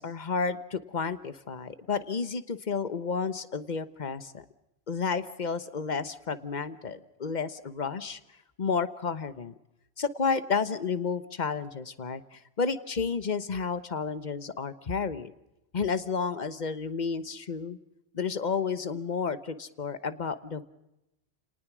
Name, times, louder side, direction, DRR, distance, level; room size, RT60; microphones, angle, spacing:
voice 1, 0.0-4.4 4.9-8.2 8.6-9.5 10.0-15.3 15.7-17.8 18.1-20.6, left 5 dB, 45° left, 13 dB, 1.2 m, -31 dB
29.5 x 19.0 x 6.2 m, 0.91 s
omnidirectional pair, 1.1 m